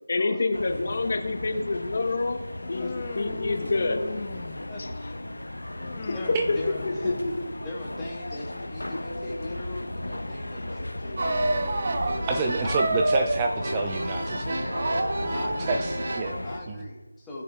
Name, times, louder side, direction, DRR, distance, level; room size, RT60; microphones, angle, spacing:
voice 1, 0.1-2.4 2.7-4.0 6.5-6.6 6.8-7.3, left 3 dB, 45° left, 4 dB, 1.1 m, -27 dB
sound 1, 0.5-16.6, left 1 dB, 80° left, 1.0 m, -35 dB
Human voice, 2.6-4.9 5.8-7.6, left 4 dB, 25° left, 0.6 m, -39 dB
voice 2, 4.7-5.3 6.1-7.2 7.6-11.4 12.0-12.8 15.3-15.9 16.4-17.4, left 1 dB, 5° left, -6 dB, 1.4 m, -39 dB
sound 2, 11.2-16.3, right 2 dB, 45° right, 1.0 m, -28 dB
voice 3, 12.3-14.9 15.6-16.4, right 4 dB, 15° right, 3 dB, 0.3 m, -29 dB
18.5 x 6.8 x 2.4 m, 1.2 s
figure-of-eight pair, 165°, 0 cm